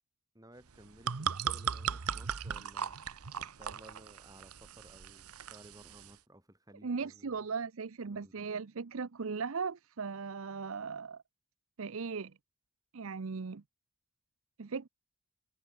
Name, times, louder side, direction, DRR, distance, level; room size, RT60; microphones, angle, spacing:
voice 1, 0.3-7.4 8.1-8.3, right 1 dB, 15° right, 5.3 m, -57 dB
sound 1, 0.7-6.2, right 7 dB, 85° right, 0.9 m, -38 dB
voice 2, 6.8-11.2 11.8-12.3 12.9-13.6 14.6-14.9, right 5 dB, 65° right, 0.6 m, -38 dB
head